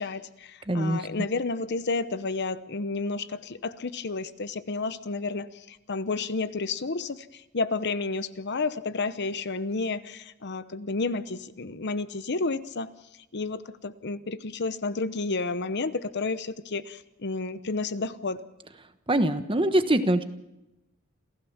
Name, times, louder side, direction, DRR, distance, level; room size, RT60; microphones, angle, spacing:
voice 1, 0.0-12.9 13.3-18.4, left 3 dB, 55° left, 13 dB, 0.9 m, -31 dB
voice 2, 0.7-1.0 19.1-20.2, right 1 dB, 25° right, 9 dB, 1.2 m, -23 dB
28.0 x 15.5 x 7.2 m, 0.94 s
head